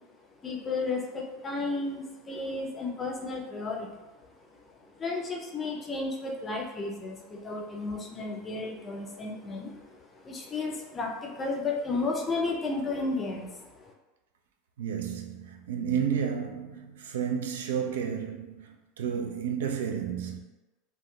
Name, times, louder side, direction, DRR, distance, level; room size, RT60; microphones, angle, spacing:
voice 1, 0.4-4.0 5.0-13.9, left 3 dB, 25° left, 0.5 m, -33 dB
voice 2, 14.8-18.7 19.0-20.4, right 7 dB, 80° right, 0.3 m, -31 dB
3.6 x 2.1 x 2.3 m
hypercardioid pair, 90°, 0 cm